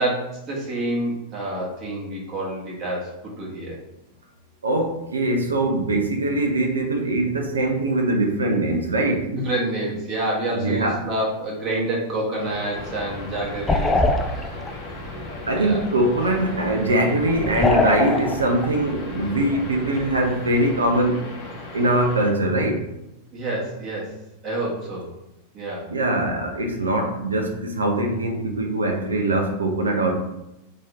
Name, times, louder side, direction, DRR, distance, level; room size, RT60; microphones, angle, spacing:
voice 1, 0.0-3.8 9.3-14.0 14.3-14.6 15.5-15.8 23.3-24.1 24.4-25.1 25.5-25.9, right 1 dB, 35° right, -4 dB, 1.2 m, -28 dB
voice 2, 4.6-9.3 10.6-11.0 15.5-21.2 21.7-22.8 25.9-30.1, right 1 dB, 75° right, 3 dB, 0.6 m, -22 dB
sound 1, 12.4-22.3, left 2 dB, 45° left, 0.9 m, -37 dB
sound 2, 12.8-21.1, left 2 dB, 15° left, 0.3 m, -27 dB
3.0 x 2.8 x 3.5 m, 0.90 s
figure-of-eight pair, 90°, 0 cm